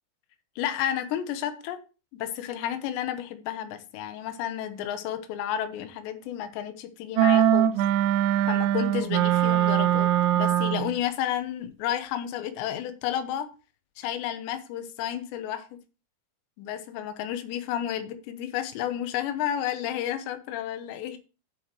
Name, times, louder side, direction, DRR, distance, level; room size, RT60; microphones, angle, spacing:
voice 1, 0.6-1.8 2.1-7.7 8.4-10.1 10.4-13.5 14.0-15.8 16.6-21.2, left 10 dB, 75° left, 3.2 m, -31 dB
sound 1, 7.2-11.0, right 10 dB, 85° right, 2.9 m, -22 dB
11.5 x 7.9 x 3.1 m
omnidirectional pair, 5.3 m